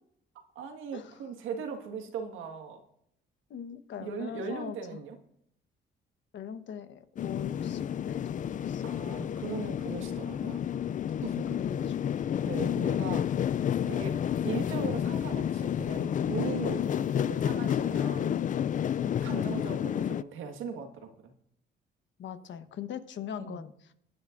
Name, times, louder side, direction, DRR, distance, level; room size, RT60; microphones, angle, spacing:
voice 1, 0.6-2.8 4.0-5.2 8.8-10.6 11.2-11.6 12.4-13.5 13.8-14.2 14.4-18.4 19.2-21.3 23.4-23.6, right 5 dB, 90° right, 5 dB, 1.7 m, -39 dB
voice 2, 3.5-5.0 6.3-8.8 11.6-12.1 19.2-19.6 22.2-23.7, left 8 dB, 70° left, 9 dB, 1.2 m, -41 dB
sound 1, 7.2-20.2, left 9 dB, 40° left, 0.4 m, -30 dB
22.0 x 9.8 x 2.6 m, 0.73 s
cardioid pair, 90°, 20 cm